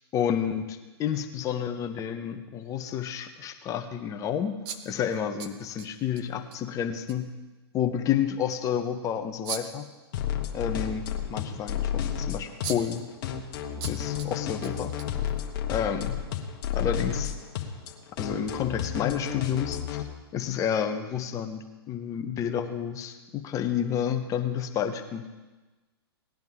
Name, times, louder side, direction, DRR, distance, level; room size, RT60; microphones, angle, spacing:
voice 1, 0.1-7.3 7.7-9.8 10.5-11.0 11.3-13.1 13.9-14.9 15.7-16.2 16.7-17.3 18.2-20.0 20.3-25.2, left 8 dB, 25° left, 6 dB, 1.0 m, -30 dB
sound 1, 4.6-6.2 6.5-6.6 7.1-7.2 9.4-9.9 12.1-12.2 12.6-13.0 13.8-14.3 14.6-15.6, right 8 dB, 35° right, 1.0 m, -38 dB
sound 2, 10.1-20.0, left 9 dB, 50° left, 1.3 m, -31 dB
18.0 x 10.5 x 3.7 m, 1.2 s
hypercardioid pair, 125°, 14 cm